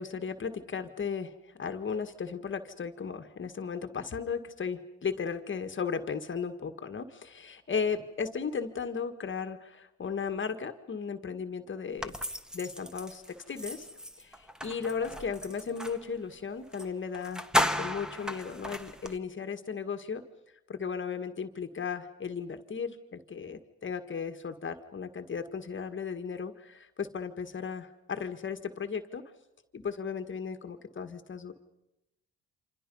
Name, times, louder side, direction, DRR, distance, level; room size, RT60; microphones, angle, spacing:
voice 1, 0.0-12.1 12.5-13.9 14.2-20.2 20.7-29.3 29.7-31.5, left 6 dB, 40° left, 7 dB, 1.7 m, -36 dB
sound 1, 12.0-16.0 16.7-16.9 17.1-19.2, equal, ahead, 1.3 m, -34 dB
28.0 x 26.5 x 5.5 m, 0.94 s
cardioid pair, 90°, 30 cm